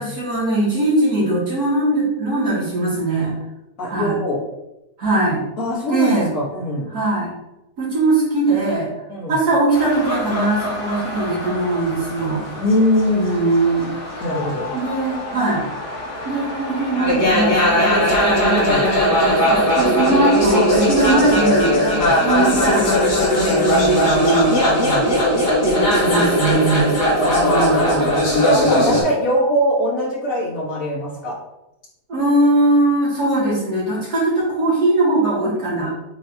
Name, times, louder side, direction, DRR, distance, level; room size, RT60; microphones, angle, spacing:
voice 1, 0.0-3.3 3.9-4.2 5.0-5.4 5.9-6.3 6.9-7.3 7.8-8.9 9.3-12.4 13.1-13.9 14.7-15.6 16.2-24.5 25.9-27.0 27.5-28.1 32.1-35.9, right 2 dB, 70° right, -7 dB, 3.0 m, -20 dB
voice 2, 3.8-4.4 5.6-6.9 9.1-9.4 12.6-13.3 14.2-14.7 18.6-18.9 21.8-22.2 24.7-25.1 27.2-31.4, equal, 55° left, -4 dB, 2.1 m, -22 dB
sound 1, 9.7-29.0, equal, 80° left, 2.9 m, -19 dB
8.2 x 4.0 x 3.0 m, 0.92 s
omnidirectional pair, 1.7 m